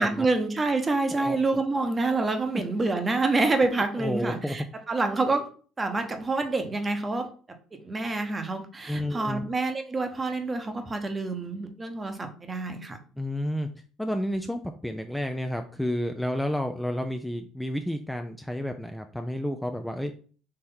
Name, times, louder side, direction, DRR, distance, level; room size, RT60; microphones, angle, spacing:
voice 1, 0.0-5.5 5.8-13.0, right 3 dB, 25° right, 7 dB, 1.0 m, -27 dB
voice 2, 1.1-1.6 4.0-4.6 8.9-9.4 13.2-13.7 14.0-20.1, left 1 dB, 5° left, 5 dB, 0.4 m, -31 dB
4.3 x 3.1 x 3.7 m, 0.41 s
hypercardioid pair, 60°, 0 cm